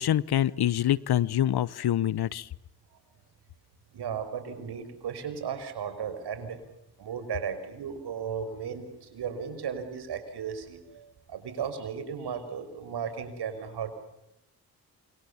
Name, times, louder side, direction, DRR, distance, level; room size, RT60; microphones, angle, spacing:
voice 1, 0.0-2.5, left 11 dB, 70° left, 21 dB, 1.1 m, -25 dB
voice 2, 3.9-6.6 7.0-14.0, right 7 dB, 75° right, 9 dB, 5.9 m, -35 dB
28.0 x 25.0 x 7.2 m, 0.91 s
supercardioid pair, 50°, 40 cm